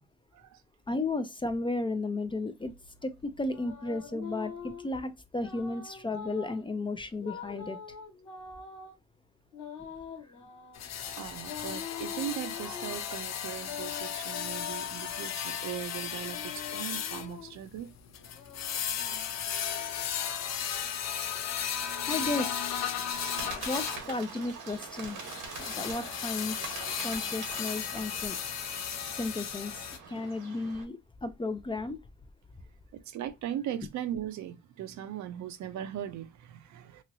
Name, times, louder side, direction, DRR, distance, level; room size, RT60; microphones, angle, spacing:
voice 1, 0.9-2.7 3.0-7.8 22.1-22.7 23.6-25.2 25.6-26.8 27.0-28.4 29.1-29.7 30.1-32.0, left 2 dB, 15° left, 0.4 m, -34 dB
sound 1, 2.6-4.9 5.4-6.6 7.2-8.9 9.5-10.9 11.4-13.0 13.6-15.4 16.0-17.6 18.2-19.6, left 7 dB, 85° left, 1.2 m, -44 dB
sound 2, 10.7-24.1 25.2-30.0, left 8 dB, 60° left, 0.6 m, -35 dB
voice 2, 11.1-17.9 20.2-20.3 23.4-23.7 30.1-30.3 32.9-37.0, right 10 dB, 70° right, 0.6 m, -39 dB
Bird, 23.1-30.8, right 5 dB, 85° right, 1.2 m, -43 dB
3.0 x 2.8 x 2.6 m
cardioid pair, 90°, 30 cm